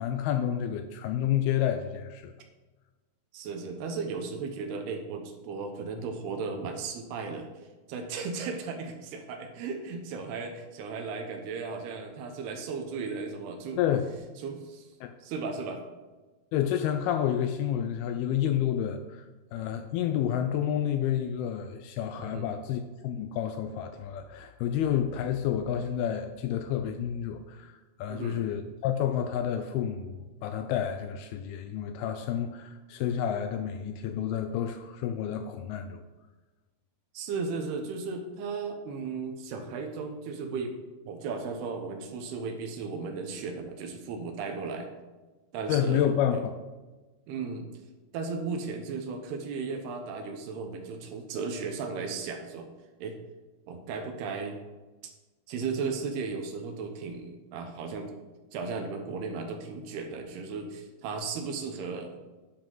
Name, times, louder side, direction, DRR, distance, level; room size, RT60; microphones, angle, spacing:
voice 1, 0.0-2.3 13.7-14.1 15.0-15.1 16.5-36.0 45.7-46.6, left 9 dB, 80° left, 7 dB, 2.4 m, -30 dB
voice 2, 3.3-7.5 7.9-13.8 14.4-14.9 15.2-15.8 18.4-18.5 22.2-22.5 28.1-28.4 37.1-40.8 41.0-44.9 45.5-46.4 47.3-47.7 48.1-52.7 53.0-53.2 53.7-54.6 55.5-58.3 58.5-62.1, right 4 dB, 80° right, 4 dB, 3.0 m, -35 dB
10.5 x 5.4 x 5.6 m, 1.2 s
omnidirectional pair, 4.6 m